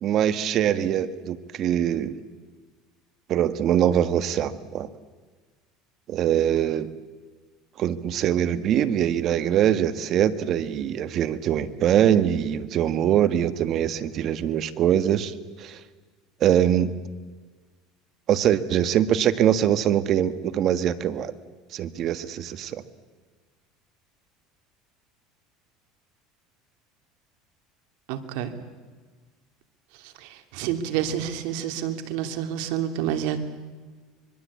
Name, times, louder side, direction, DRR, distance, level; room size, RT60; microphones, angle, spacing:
voice 1, 0.0-2.2 3.3-4.9 6.1-6.9 7.8-15.3 15.6-15.8 16.4-16.9 18.3-21.3 21.7-22.8, right 10 dB, 45° right, 13 dB, 1.5 m, -23 dB
voice 2, 28.1-28.5 30.5-33.4, right 10 dB, 75° right, 7 dB, 2.6 m, -28 dB
25.0 x 22.0 x 8.5 m, 1.4 s
supercardioid pair, 125°, 0 cm